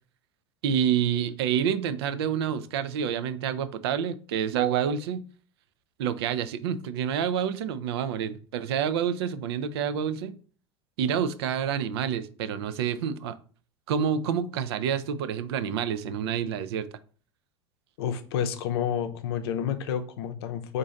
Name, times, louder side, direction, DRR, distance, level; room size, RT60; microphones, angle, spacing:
voice 1, 0.6-5.2 6.0-10.3 11.0-13.3 13.9-16.9, right 8 dB, 70° right, 0.4 m, -28 dB
voice 2, 18.0-20.8, left 8 dB, 65° left, 0.6 m, -29 dB
3.9 x 2.6 x 3.8 m
hypercardioid pair, 80°, 14 cm